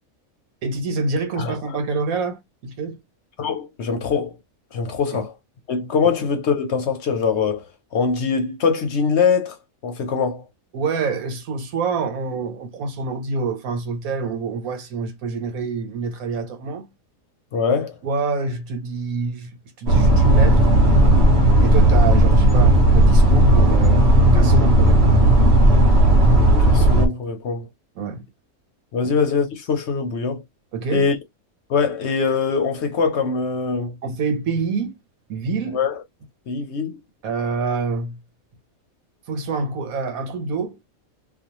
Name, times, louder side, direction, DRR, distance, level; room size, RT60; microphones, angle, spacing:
voice 1, 0.6-3.0 10.7-16.8 18.0-19.5 19.8-20.7 21.6-24.0 24.3-25.2 28.0-28.2 30.7-31.1 34.0-35.0 35.3-35.8 37.2-38.2 39.3-40.8, right 4 dB, 80° right, 1.3 m, -26 dB
voice 2, 3.4-4.3 4.7-5.3 5.7-7.7 7.9-9.6 9.8-10.4 17.5-17.9 26.6-27.7 28.9-30.4 30.9-31.2 31.7-34.0 35.7-36.0 36.5-37.0, left 5 dB, 60° left, 0.9 m, -22 dB
sound 1, 19.9-27.1, right 1 dB, 55° right, 0.9 m, -14 dB
2.5 x 2.3 x 2.8 m
omnidirectional pair, 1.5 m